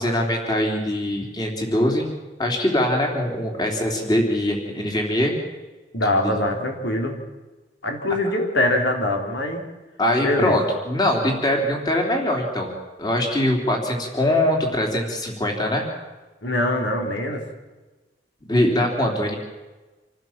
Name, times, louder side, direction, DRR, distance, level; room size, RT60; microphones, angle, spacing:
voice 1, 0.0-2.1 2.4-5.3 6.2-6.3 10.0-12.7 13.0-15.9 18.5-19.4, left 1 dB, 20° left, 2 dB, 3.5 m, -22 dB
voice 2, 5.9-7.2 7.8-9.6 10.2-10.6 16.4-17.4, left 1 dB, 80° left, 2 dB, 3.7 m, -23 dB
27.0 x 15.5 x 7.4 m, 1.2 s
head